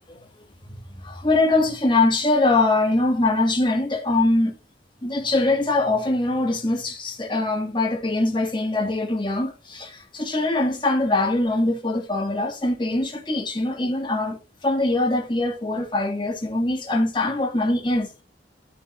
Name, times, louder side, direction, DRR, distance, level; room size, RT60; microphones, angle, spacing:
voice 1, 0.6-4.6 5.0-18.2, left 2 dB, 25° left, 1.7 m, -23 dB
13.5 x 6.2 x 2.5 m
head